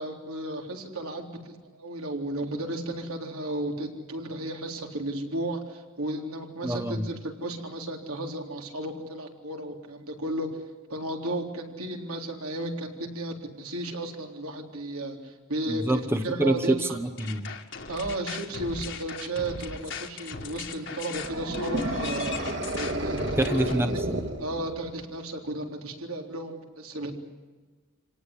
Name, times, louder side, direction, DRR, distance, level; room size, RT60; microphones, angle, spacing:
voice 1, 0.0-10.5 10.9-17.0 17.9-23.4 24.4-27.1, right 1 dB, 80° right, 2 dB, 3.8 m, -34 dB
voice 2, 6.6-7.0 15.7-17.4 23.4-24.2, right 1 dB, 10° right, 7 dB, 1.0 m, -26 dB
sound 1, 17.2-23.7, left 4 dB, 55° left, 2.1 m, -37 dB
sound 2, 21.1-25.0, right 1 dB, 55° right, 2.4 m, -32 dB
27.0 x 18.5 x 10.0 m, 1.4 s
head